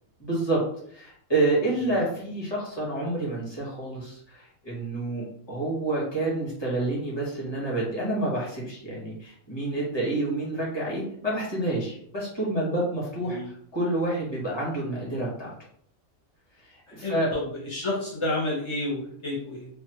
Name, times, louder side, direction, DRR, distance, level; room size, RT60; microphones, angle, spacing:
voice 1, 0.2-0.6 0.9-15.5 16.7-17.3, right 2 dB, 20° left, -6 dB, 1.1 m, -28 dB
voice 2, 16.9-19.7, left 2 dB, 45° left, -5 dB, 0.4 m, -31 dB
3.3 x 2.2 x 2.9 m, 0.65 s
omnidirectional pair, 1.5 m